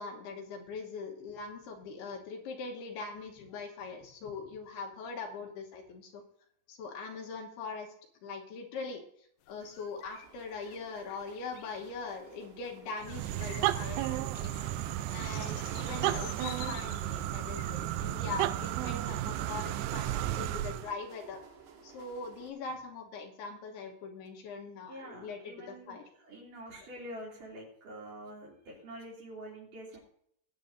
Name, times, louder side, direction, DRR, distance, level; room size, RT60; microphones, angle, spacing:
voice 1, 0.0-6.2 6.7-7.9 8.2-21.4 21.8-26.1, left 4 dB, 70° left, 2 dB, 3.0 m, -42 dB
sound 1, 9.5-18.1, left 12 dB, 90° left, 2.2 m, -51 dB
sound 2, 10.2-22.5, right 5 dB, 65° right, 3.8 m, -55 dB
sound 3, 13.0-20.9, right 13 dB, 85° right, 2.4 m, -33 dB
voice 2, 24.9-30.0, right 1 dB, 50° right, -3 dB, 4.1 m, -46 dB
19.5 x 9.0 x 2.6 m, 0.67 s
omnidirectional pair, 5.1 m